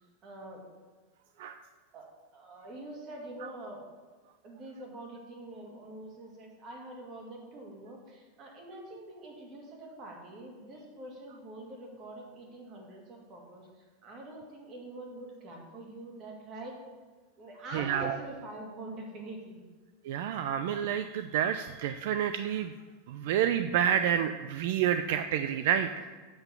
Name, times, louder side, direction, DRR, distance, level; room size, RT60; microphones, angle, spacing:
voice 1, 0.2-0.6 1.9-2.1 2.3-3.8 4.4-13.7 14.0-16.8 17.4-19.6, right 1 dB, 30° right, 0 dB, 1.9 m, -45 dB
voice 2, 17.7-18.2 20.1-22.7 23.1-26.0, right 9 dB, 60° right, 10 dB, 0.4 m, -29 dB
7.8 x 5.9 x 7.0 m, 1.4 s
supercardioid pair, 170°, 0 cm